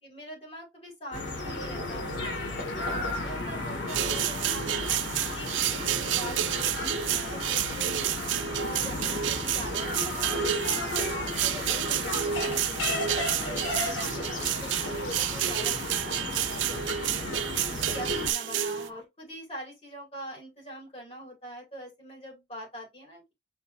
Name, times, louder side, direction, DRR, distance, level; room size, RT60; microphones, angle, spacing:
voice 1, 0.0-4.9 5.3-8.2 8.6-12.6 13.0-17.2 17.7-23.3, equal, 35° left, 2.3 m, -43 dB
sound 1, 1.1-18.3, left 2 dB, 90° left, 2.0 m, -34 dB
sound 2, 1.9-2.0 2.4-5.8 7.3-7.7 8.5-11.3 12.5-12.6 14.1-17.0 17.5-17.6 18.1-18.2 18.5-19.0, left 2 dB, 70° left, 0.9 m, -43 dB
sound 3, 3.9-18.9, right 11 dB, 85° right, 0.4 m, -30 dB
5.7 x 3.2 x 2.6 m
head